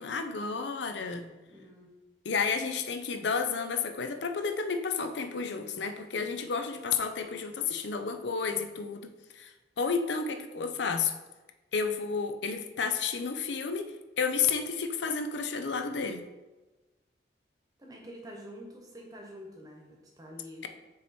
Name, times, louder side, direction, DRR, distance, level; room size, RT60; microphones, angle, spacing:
voice 1, 0.0-1.3 2.2-11.1 11.7-16.2, left 5 dB, 75° left, 8 dB, 0.6 m, -31 dB
voice 2, 1.5-1.9 17.8-20.7, equal, 20° right, -1 dB, 1.0 m, -47 dB
7.2 x 3.1 x 4.3 m, 1.1 s
head